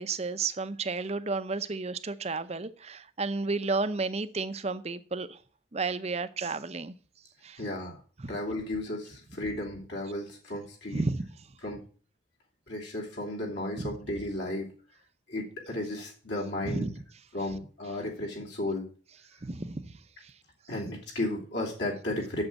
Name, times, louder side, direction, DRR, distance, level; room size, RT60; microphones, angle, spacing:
voice 1, 0.0-5.4 5.7-6.9 7.4-7.6 8.2-8.3 10.9-11.3 13.8-13.9 16.6-16.9 19.4-19.9 20.2-20.3, right 3 dB, 35° right, 0.6 m, -32 dB
voice 2, 7.6-8.0 8.3-11.0 11.6-11.8 12.7-14.7 15.3-16.9 17.3-18.9 20.7-22.4, left 1 dB, 65° left, 2.9 m, -34 dB
8.0 x 7.3 x 8.4 m
head